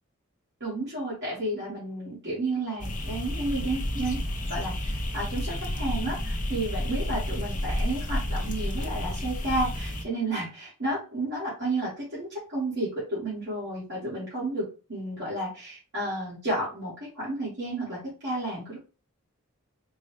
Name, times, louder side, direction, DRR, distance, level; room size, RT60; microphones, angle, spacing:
voice 1, 0.6-4.2 4.5-14.6 14.9-18.8, right 2 dB, 55° right, -9 dB, 1.9 m, -32 dB
sound 1, 2.8-10.0, left 1 dB, 35° left, 0.7 m, -31 dB
4.4 x 2.3 x 3.2 m, 0.34 s
head